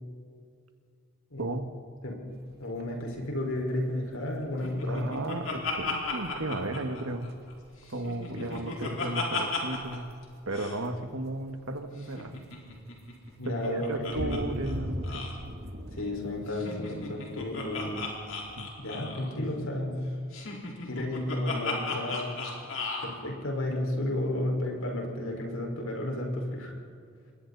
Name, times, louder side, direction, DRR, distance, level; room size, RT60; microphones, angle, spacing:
sound 1, 2.3-18.7, equal, 50° right, 2.0 m, -44 dB
voice 1, 2.6-5.2 8.3-8.9 13.4-14.5 16.0-18.0 18.8-20.0 20.9-22.4 23.0-26.7, left 1 dB, 85° left, 0 dB, 5.3 m, -32 dB
Laughter, 4.6-7.5 7.9-10.0 10.2-10.3 10.5-10.8 12.0-14.4 14.6-14.8 15.0-15.4 16.5-19.3 20.3-23.1, left 3 dB, 70° left, 4.4 m, -35 dB
voice 2, 4.9-7.3 7.9-10.1 10.5-12.4 13.5-15.3 18.6-18.7, right 2 dB, 80° right, 6 dB, 1.9 m, -34 dB
28.0 x 21.5 x 4.3 m, 2.2 s
head